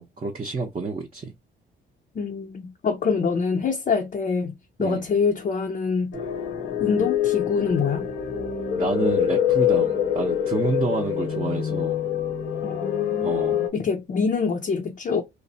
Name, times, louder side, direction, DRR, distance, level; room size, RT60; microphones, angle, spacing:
voice 1, 0.0-1.3 4.8-5.0 8.7-12.0 13.2-13.6, right 3 dB, 30° right, 0.7 m, -29 dB
voice 2, 2.1-6.1 6.8-8.1 12.6-13.3 13.7-15.2, left 5 dB, 40° left, 0.5 m, -25 dB
sound 1, 6.1-13.7, left 9 dB, 80° left, 0.9 m, -25 dB
2.9 x 2.0 x 2.7 m
cardioid pair, 90°, 20 cm